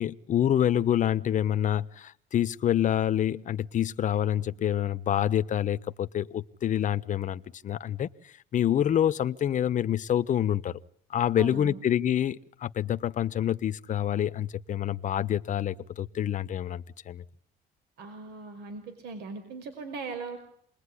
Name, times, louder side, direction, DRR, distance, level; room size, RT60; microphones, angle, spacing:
voice 1, 0.0-10.8 11.1-17.2, left 10 dB, 50° left, 1.1 m, -27 dB
voice 2, 11.4-11.8 18.0-20.4, right 4 dB, 80° right, 5.4 m, -39 dB
28.0 x 21.0 x 10.0 m
cardioid pair, 110°, 17 cm